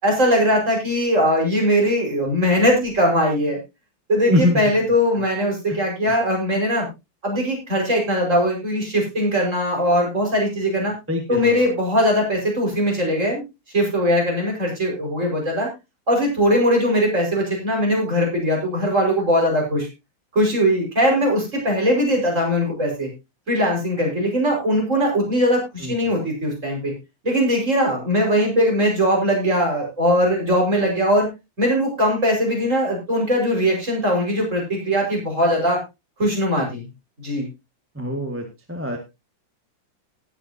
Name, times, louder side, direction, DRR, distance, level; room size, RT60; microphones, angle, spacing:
voice 1, 0.0-3.6 4.1-6.9 7.2-10.9 11.3-13.4 13.7-15.7 16.1-19.9 20.3-23.1 23.5-26.9 27.2-31.3 31.6-35.8 36.2-36.9 37.2-37.5, equal, 40° right, 0 dB, 5.7 m, -20 dB
voice 2, 4.3-4.6 5.2-5.3 5.7-5.8 6.0-6.1 11.1-11.7 25.8-26.2 38.0-39.0, left 1 dB, 5° right, 3 dB, 1.6 m, -24 dB
18.5 x 8.5 x 2.8 m, 0.24 s
omnidirectional pair, 2.1 m